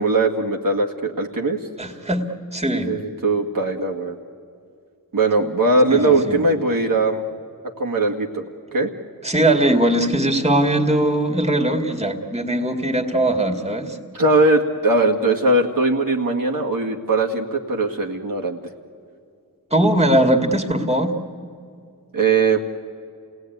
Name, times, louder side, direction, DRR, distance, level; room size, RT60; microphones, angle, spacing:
voice 1, 0.0-1.6 2.8-4.2 5.1-7.3 7.8-8.4 8.7-8.9 14.1-18.6 22.1-22.6, right 2 dB, 60° right, -1 dB, 2.1 m, -20 dB
voice 2, 1.8-3.0 5.9-6.4 9.2-14.0 19.7-21.2, right 1 dB, 15° right, 4 dB, 2.3 m, -20 dB
28.0 x 18.0 x 9.4 m, 2.4 s
cardioid pair, 50°, 37 cm